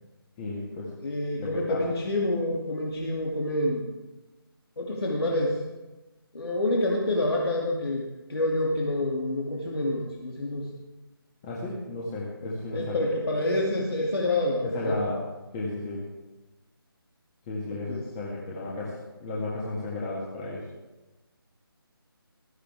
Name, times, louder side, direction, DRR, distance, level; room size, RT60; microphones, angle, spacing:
voice 1, 0.4-0.9 1.4-1.8 11.4-13.1 14.6-15.2 15.5-16.0 17.5-18.9 19.2-20.6, left 2 dB, 15° left, -5 dB, 1.7 m, -33 dB
voice 2, 1.0-3.8 4.8-5.6 6.3-8.0 8.3-10.7 12.7-15.0 17.7-18.0, left 1 dB, 75° left, -2 dB, 2.6 m, -27 dB
15.0 x 14.5 x 3.5 m, 1.1 s
figure-of-eight pair, 170°, 13 cm